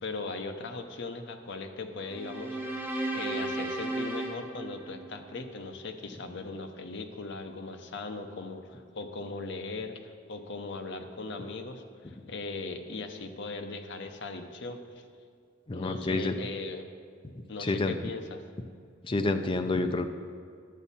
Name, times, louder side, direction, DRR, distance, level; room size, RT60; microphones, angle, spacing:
voice 1, 0.0-2.6 3.1-15.0 15.7-16.9 17.5-18.4, left 3 dB, 65° left, 6 dB, 0.7 m, -39 dB
sound 1, 2.1-5.4, right 2 dB, 10° right, 0.9 m, -35 dB
voice 2, 15.7-16.3 17.6-18.0 19.0-20.1, left 2 dB, 25° left, 7 dB, 0.5 m, -28 dB
10.0 x 7.0 x 4.2 m, 2.2 s
head